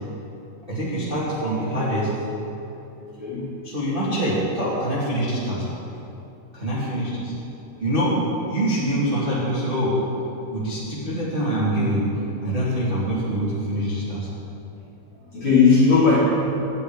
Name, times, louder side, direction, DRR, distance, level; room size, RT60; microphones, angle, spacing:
voice 1, 0.7-2.1 3.6-5.6 6.5-7.3 7.8-8.1 8.5-9.9 10.5-12.1 12.4-14.3, right 1 dB, 15° right, -9 dB, 2.1 m, -24 dB
voice 2, 3.0-3.4 6.9-7.0 15.2-16.2, left 5 dB, 30° left, -9 dB, 3.8 m, -18 dB
13.0 x 6.4 x 9.5 m, 2.9 s
omnidirectional pair, 4.4 m